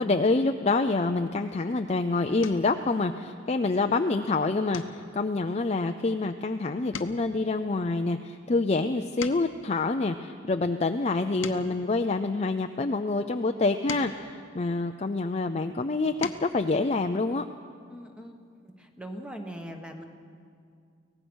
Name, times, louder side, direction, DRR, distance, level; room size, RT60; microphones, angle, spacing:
voice 1, 0.0-17.4, left 3 dB, 35° left, 6 dB, 0.5 m, -27 dB
sound 1, 2.4-2.8 3.3-3.7 4.0-4.2 4.7-6.5 6.8-9.7 10.3-12.8 13.5-15.3 15.9-16.6 18.0-18.1 18.4-18.6, left 5 dB, 85° left, 1.0 m, -43 dB
voice 2, 17.9-18.4 18.8-20.0, equal, 5° right, 4 dB, 1.4 m, -40 dB
24.0 x 18.0 x 6.3 m, 2.3 s
head